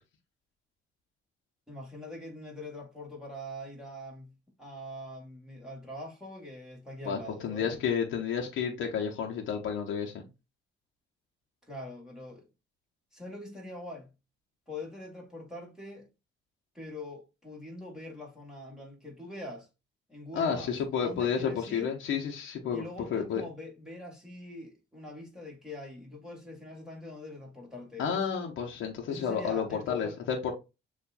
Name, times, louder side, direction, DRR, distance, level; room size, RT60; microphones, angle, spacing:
voice 1, 1.7-7.8 11.7-12.5 13.1-14.1 14.7-16.1 16.7-19.7 20.1-20.7 21.0-22.0 22.7-28.5 29.1-30.2, left 1 dB, 5° right, 2.0 m, -43 dB
voice 2, 7.0-10.3 20.3-22.8 23.1-23.4 28.0-30.5, left 7 dB, 80° left, 0.9 m, -31 dB
6.8 x 2.5 x 2.5 m
cardioid pair, 90°, 20 cm